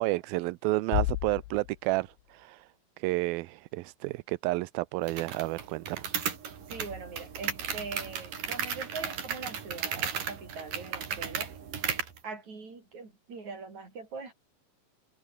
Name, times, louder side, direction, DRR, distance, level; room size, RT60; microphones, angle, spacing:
voice 1, 0.0-2.7 3.0-6.0, right 21 dB, 85° right, 2.4 m, -31 dB
Bass drum, 0.9-2.6, left 17 dB, 85° left, 2.8 m, -33 dB
sound 1, 5.1-12.2, right 7 dB, 65° right, 4.7 m, -35 dB
voice 2, 6.7-11.5 12.2-14.3, right 4 dB, 50° right, 7.4 m, -42 dB
omnidirectional pair, 4.2 m